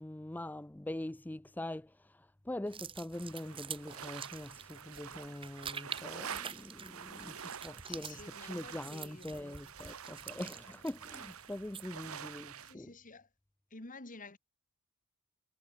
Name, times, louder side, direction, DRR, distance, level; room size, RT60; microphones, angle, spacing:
voice 1, 0.0-12.9, left 1 dB, 10° left, 0.4 m, -43 dB
sound 1, 2.7-12.1, right 7 dB, 25° right, 1.0 m, -47 dB
sound 2, 3.1-12.7, right 7 dB, 70° right, 1.3 m, -48 dB
voice 2, 7.8-9.6 12.6-13.3 13.7-14.4, left 3 dB, 40° left, 2.3 m, -51 dB
head